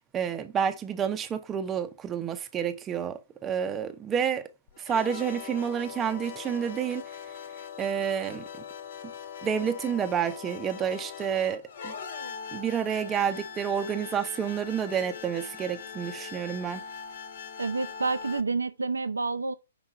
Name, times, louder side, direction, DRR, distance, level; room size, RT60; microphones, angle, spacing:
voice 1, 0.1-4.5 4.8-7.2 7.8-8.4 9.4-11.9 12.5-16.8, right 8 dB, 20° right, 0.6 m, -29 dB
sound 1, 4.7-18.4, left 7 dB, 60° left, 1.2 m, -41 dB
voice 2, 17.6-19.5, right 3 dB, 85° right, 0.5 m, -29 dB
5.8 x 3.7 x 5.7 m
hypercardioid pair, 130°, 0 cm